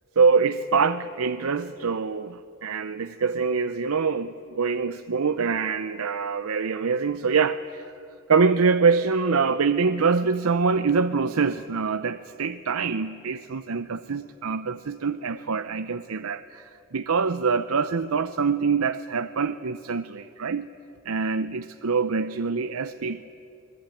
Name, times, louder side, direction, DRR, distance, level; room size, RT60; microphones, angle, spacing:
voice 1, 0.2-7.9 8.3-20.7 21.0-23.2, right 5 dB, 90° right, 11 dB, 0.7 m, -24 dB
25.0 x 20.5 x 9.1 m, 2.8 s
head